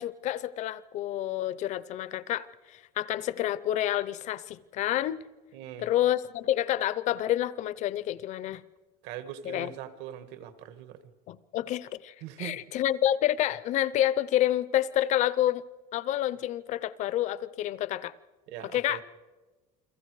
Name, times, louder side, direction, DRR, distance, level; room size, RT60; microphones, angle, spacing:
voice 1, 0.0-5.2 5.8-8.6 9.5-9.7 11.3-15.6 15.9-18.1 18.7-19.0, left 12 dB, 40° left, 18 dB, 0.6 m, -28 dB
voice 2, 5.5-5.9 9.0-11.0 12.2-12.6 18.5-19.0, right 11 dB, 65° right, 11 dB, 1.7 m, -41 dB
30.0 x 23.0 x 4.8 m, 1.3 s
cardioid pair, 175°, 19 cm